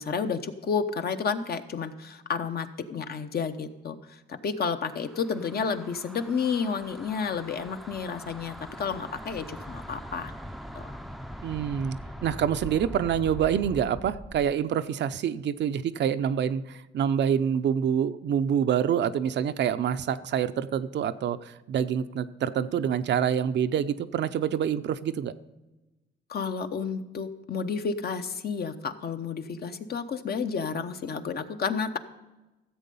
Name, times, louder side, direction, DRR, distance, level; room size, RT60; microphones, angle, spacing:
voice 1, 0.0-10.3 10.7-10.9 26.3-32.0, left 5 dB, 50° left, 8 dB, 0.9 m, -31 dB
sound 1, 4.8-14.6, equal, ahead, 0.5 m, -42 dB
voice 2, 11.4-25.3, right 8 dB, 60° right, 11 dB, 0.6 m, -26 dB
14.5 x 7.6 x 5.4 m, 1.1 s
cardioid pair, 90°, 20 cm